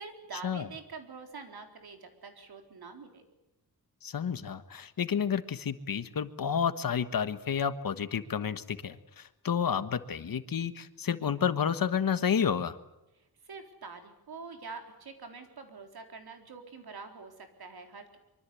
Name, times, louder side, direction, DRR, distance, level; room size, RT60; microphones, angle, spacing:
voice 1, 0.0-3.2 13.1-18.2, right 4 dB, 75° right, 5 dB, 4.1 m, -46 dB
voice 2, 4.0-12.8, left 7 dB, 60° left, 11 dB, 1.3 m, -30 dB
24.5 x 24.0 x 8.5 m, 0.92 s
wide cardioid pair, 180°, 38 cm